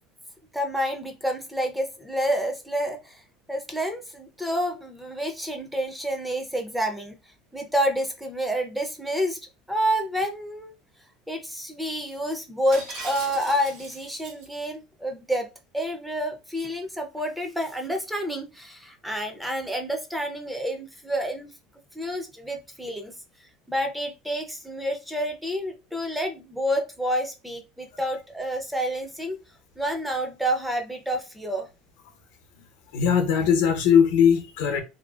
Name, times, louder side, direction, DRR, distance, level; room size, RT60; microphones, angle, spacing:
voice 1, 0.5-3.2 3.5-7.2 7.5-9.4 9.7-10.7 11.3-21.5 21.9-23.1 23.7-29.4 29.8-31.7, equal, 5° right, 0.4 m, -29 dB
Shatter, 12.7-14.5, right 3 dB, 65° right, 1.3 m, -39 dB
voice 2, 32.9-34.8, left 7 dB, 80° left, 0.7 m, -20 dB
2.6 x 2.4 x 2.3 m
cardioid pair, 145°, 0 cm